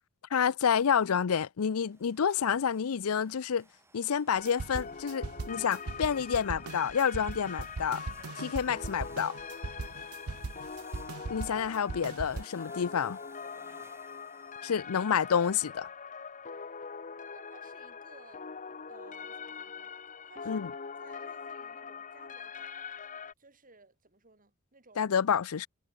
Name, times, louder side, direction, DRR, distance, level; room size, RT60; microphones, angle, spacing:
voice 1, 0.3-3.6 3.9-8.0 8.3-9.3 11.3-13.2 14.6-15.9 20.5-20.7 25.0-25.7, left 7 dB, 75° left, 0.5 m, -29 dB
sound 1, 1.8-15.0, right 2 dB, 10° right, 4.1 m, -61 dB
sound 2, 4.4-23.3, left 6 dB, 35° left, 1.0 m, -43 dB
sound 3, 4.4-12.4, right 3 dB, 85° right, 0.8 m, -39 dB
voice 2, 17.3-18.5 18.9-19.9 20.2-20.7 21.0-22.7 23.4-25.1, right 3 dB, 40° right, 5.6 m, -58 dB
head